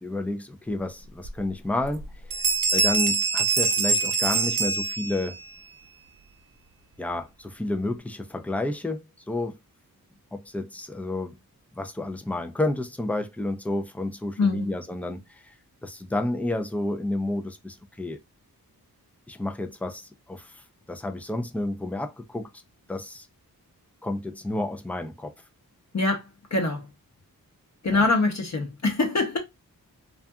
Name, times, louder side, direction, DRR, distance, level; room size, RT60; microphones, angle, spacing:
voice 1, 0.0-2.4 2.7-5.4 7.0-9.6 10.3-11.4 11.8-15.5 15.8-18.2 19.3-22.5 22.9-23.3 24.0-25.3 27.9-28.1, left 2 dB, 5° left, 0.4 m, -30 dB
Bell, 1.2-1.3 1.8-2.1 2.3-5.5, right 4 dB, 60° right, 0.6 m, -24 dB
voice 2, 14.4-14.7 25.9-26.9 27.8-29.4, left 3 dB, 45° left, 0.8 m, -24 dB
2.6 x 2.4 x 2.3 m
wide cardioid pair, 80°, 37 cm